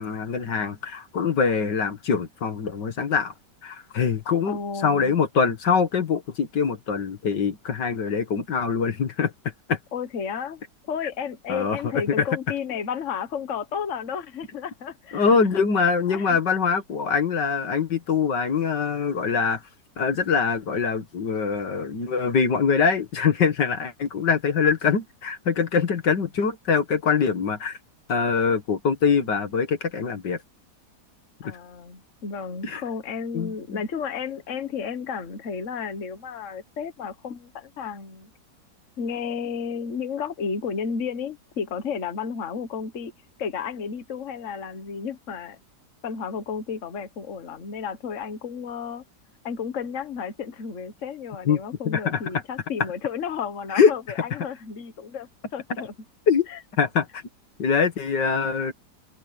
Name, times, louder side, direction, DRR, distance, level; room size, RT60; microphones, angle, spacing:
voice 1, 0.0-3.3 3.6-9.3 9.7-9.8 11.5-11.8 12.2-12.3 15.1-19.6 20.0-27.8 28.1-30.4 31.4-31.5 32.6-32.8 33.3-33.8 51.5-51.6 51.9-52.2 53.7-53.9 56.3-56.5 56.8-57.2 57.6-58.7, left 6 dB, 80° left, 2.4 m, -23 dB
voice 2, 4.4-5.2 9.9-10.6 10.9-15.6 16.1-16.3 31.4-38.3 39.0-43.1 43.4-45.6 46.0-49.0 49.4-55.9 56.5-56.6, left 6 dB, 45° left, 1.6 m, -32 dB
omnidirectional pair, 1.8 m